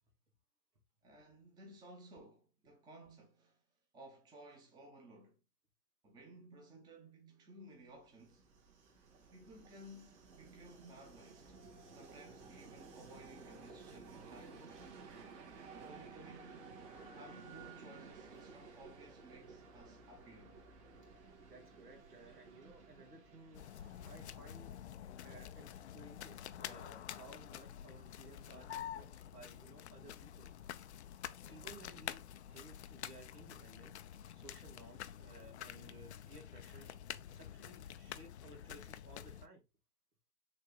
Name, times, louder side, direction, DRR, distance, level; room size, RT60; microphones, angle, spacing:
voice 1, 1.0-3.6 3.9-5.4 6.0-8.5 9.3-11.6 11.9-14.8 15.7-16.7 17.0-20.6, right 1 dB, 10° right, 0.8 m, -57 dB
Train, 7.9-25.7, right 4 dB, 45° right, 2.0 m, -55 dB
voice 2, 21.5-23.7 24.0-24.7 25.2-30.5 31.5-34.0 34.3-39.6, right 2 dB, 80° right, 2.4 m, -58 dB
sound 1, 23.5-39.5, left 10 dB, 50° left, 0.5 m, -48 dB
6.4 x 3.4 x 2.4 m
figure-of-eight pair, 125°, 46 cm